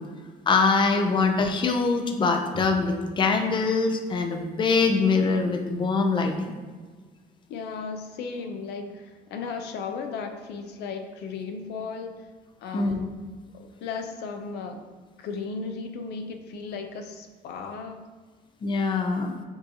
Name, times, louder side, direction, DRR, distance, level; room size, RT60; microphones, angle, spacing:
voice 1, 0.5-6.5 12.7-13.0 18.6-19.3, left 4 dB, 30° left, 5 dB, 0.5 m, -23 dB
voice 2, 7.5-12.1 12.6-13.1 13.5-14.8 15.2-18.0, left 5 dB, 75° left, 5 dB, 0.5 m, -35 dB
6.9 x 2.6 x 2.8 m, 1.5 s
cardioid pair, 110°, 17 cm